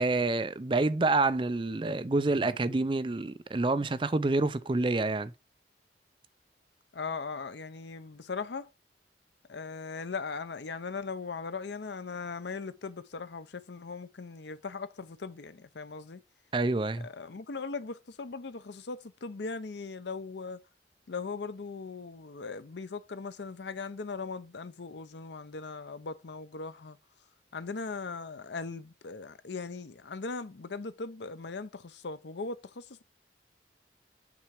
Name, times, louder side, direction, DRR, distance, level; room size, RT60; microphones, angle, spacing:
voice 1, 0.0-5.3 16.5-17.1, right 3 dB, 30° right, 0.4 m, -27 dB
voice 2, 6.9-8.7 9.5-16.2 17.0-20.6 21.1-27.0 27.5-33.0, left 4 dB, 75° left, 0.6 m, -39 dB
6.1 x 4.3 x 4.8 m
head